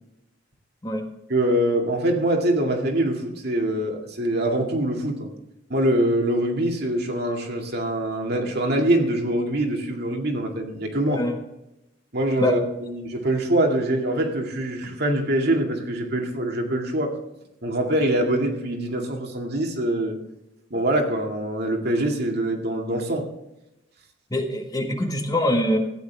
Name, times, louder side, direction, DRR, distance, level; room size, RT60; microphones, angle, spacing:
voice 1, 1.3-5.3 5.7-11.2 12.1-17.2 17.6-20.2 20.7-23.2, right 1 dB, 60° right, 1 dB, 2.1 m, -24 dB
voice 2, 24.3-25.8, left 1 dB, 20° left, 3 dB, 1.5 m, -24 dB
14.5 x 9.4 x 3.5 m, 0.89 s
head